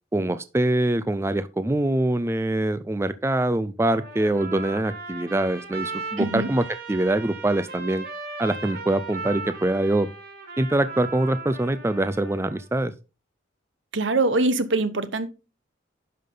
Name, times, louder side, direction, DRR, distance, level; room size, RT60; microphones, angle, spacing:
voice 1, 0.1-6.6 6.9-8.0 8.4-10.1 10.6-12.9, right 1 dB, 15° right, 0.4 m, -24 dB
Trumpet, 3.9-12.7, right 4 dB, 55° right, 3.9 m, -37 dB
voice 2, 6.2-6.5 13.9-15.3, right 2 dB, 75° right, 1.1 m, -23 dB
10.5 x 5.7 x 3.8 m
head